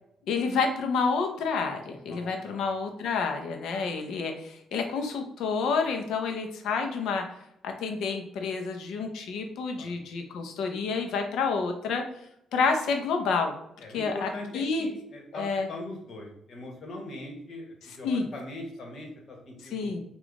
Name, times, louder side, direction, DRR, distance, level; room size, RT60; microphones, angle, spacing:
voice 1, 0.3-7.2 7.6-12.0 12.5-13.5 13.9-14.9 15.3-15.7 18.0-18.3 19.7-20.0, left 4 dB, 80° left, 4 dB, 0.6 m, -29 dB
voice 2, 2.0-2.6 9.8-9.9 13.8-15.4 15.7-19.9, left 2 dB, 55° left, 0 dB, 1.3 m, -41 dB
3.6 x 2.4 x 3.5 m, 0.77 s
cardioid pair, 90°, 0 cm